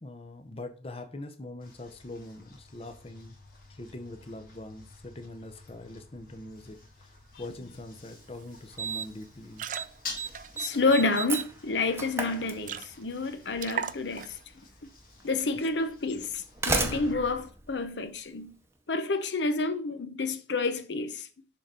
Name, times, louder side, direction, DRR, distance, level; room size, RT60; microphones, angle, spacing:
voice 1, 0.0-3.4 3.7-9.7 15.5-15.7, left 2 dB, 35° left, 0.7 m, -43 dB
sound 1, 1.6-17.1, left 3 dB, 50° left, 1.8 m, -50 dB
sound 2, 7.7-7.8 8.2-8.4 8.7-8.9 9.4-11.4 11.9-12.0 12.3-12.4 12.6-13.2 13.6-14.4, right 7 dB, 45° right, 0.4 m, -38 dB
Slam, 8.0-8.1 8.8-9.2 9.5-9.9 10.2-13.1 14.2-14.3 15.2-15.3 16.2-18.6, right 3 dB, 15° right, 0.7 m, -33 dB
voice 2, 10.6-14.3 15.2-18.5 18.9-21.3, left 3 dB, 85° left, 0.8 m, -29 dB
6.8 x 3.8 x 5.1 m
head